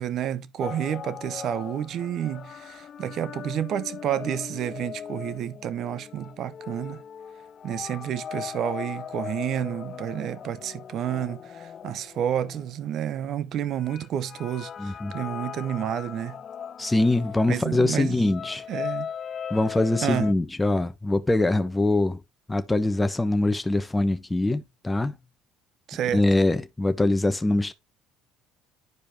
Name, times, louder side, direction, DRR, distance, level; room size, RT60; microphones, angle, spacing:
voice 1, 0.0-7.0 7.6-16.4 17.5-18.2 18.7-19.1 20.0-20.3 25.9-26.2, right 10 dB, 60° right, 0.9 m, -30 dB
sound 1, 0.6-13.1 13.8-20.3, left 8 dB, 45° left, 0.4 m, -39 dB
voice 2, 14.8-15.1 16.8-18.6 19.5-22.2 22.5-25.1 26.1-27.7, left 2 dB, 15° left, 1.0 m, -23 dB
11.0 x 4.9 x 2.8 m
hypercardioid pair, 70°, 0 cm